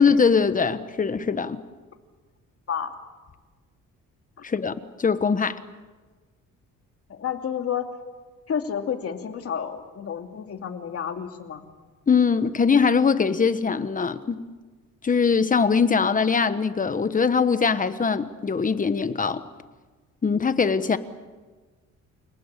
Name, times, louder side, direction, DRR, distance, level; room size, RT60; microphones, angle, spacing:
voice 1, 0.0-1.6 4.4-5.6 12.1-14.4 15.0-19.4 20.2-21.0, left 5 dB, 25° left, 12 dB, 1.3 m, -22 dB
voice 2, 7.1-7.9 8.5-11.6, left 8 dB, 45° left, 5 dB, 2.7 m, -30 dB
28.5 x 19.0 x 8.4 m, 1.3 s
cardioid pair, 120°, 31 cm